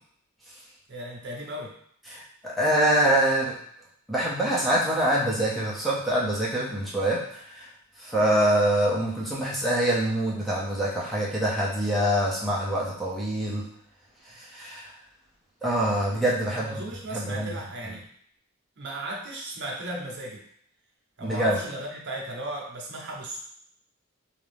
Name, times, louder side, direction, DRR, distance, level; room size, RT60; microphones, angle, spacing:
voice 1, 0.9-1.8 16.6-18.0 18.8-20.4 21.2-23.4, right 1 dB, 55° right, -1 dB, 0.7 m, -35 dB
voice 2, 2.1-3.6 4.1-7.7 8.0-13.7 14.3-14.9 15.6-16.7 17.1-17.6 21.2-21.6, right 1 dB, ahead, -7 dB, 0.5 m, -25 dB
2.6 x 2.4 x 3.3 m, 0.64 s
head